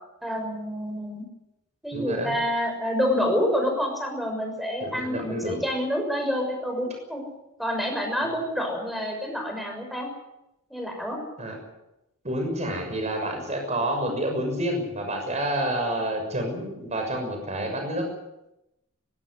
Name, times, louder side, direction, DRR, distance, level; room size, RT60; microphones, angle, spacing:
voice 1, 0.2-1.2 1.8-7.3 7.6-10.1 10.7-11.2, equal, ahead, 3 dB, 6.1 m, -28 dB
voice 2, 1.9-2.4 4.8-5.6 11.4-11.6 12.2-18.1, right 1 dB, 30° right, 3 dB, 6.4 m, -29 dB
20.5 x 16.0 x 9.8 m, 0.90 s
head